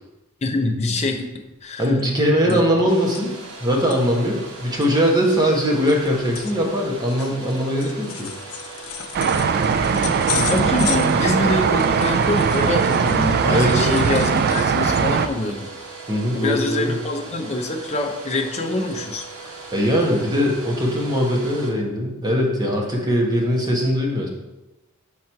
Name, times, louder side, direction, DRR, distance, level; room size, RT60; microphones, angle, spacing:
voice 1, 0.4-1.9 2.4-2.6 10.3-15.7 16.3-19.2, left 2 dB, 30° left, 2 dB, 0.6 m, -25 dB
sound 1, 1.5-1.6 1.9-2.8 3.1-3.2 3.7-4.0 4.5-4.6 4.8-13.3 13.6-15.3 15.7-15.9 16.2-16.4 17.5-18.1 18.5-18.9 19.2-19.3 19.9-20.0, left 8 dB, 80° left, 0.5 m, -35 dB
voice 2, 1.8-3.3 3.6-8.3 13.5-14.0 16.1-17.0 19.7-24.3, equal, 20° right, -1 dB, 1.0 m, -21 dB
Domestic sounds home sounds, 2.9-21.7, right 3 dB, 85° right, 1.1 m, -39 dB
sound 2, 9.1-15.3, right 6 dB, 45° right, 0.3 m, -20 dB
5.6 x 3.1 x 5.6 m, 1.0 s
head